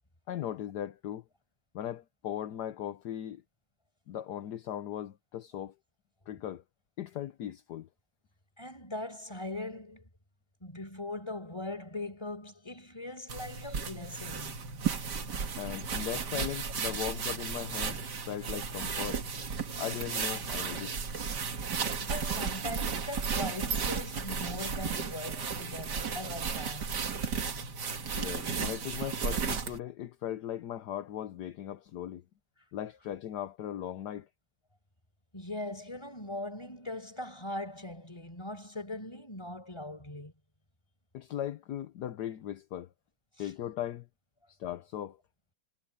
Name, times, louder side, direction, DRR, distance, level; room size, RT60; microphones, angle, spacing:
voice 1, 0.3-1.2 1.7-3.4 4.1-5.7 6.3-6.6 7.0-7.9 15.6-18.0 18.3-19.2 19.8-21.0 28.1-32.2 32.7-34.3 41.1-42.9 43.4-44.1 44.5-45.2, left 11 dB, 65° left, 1.3 m, -38 dB
voice 2, 8.6-10.1 10.6-14.6 22.0-26.9 35.3-40.3 43.4-43.5, left 1 dB, 15° left, 4.9 m, -40 dB
sound 1, 13.3-29.8, right 6 dB, 60° right, 2.3 m, -34 dB
omnidirectional pair, 2.1 m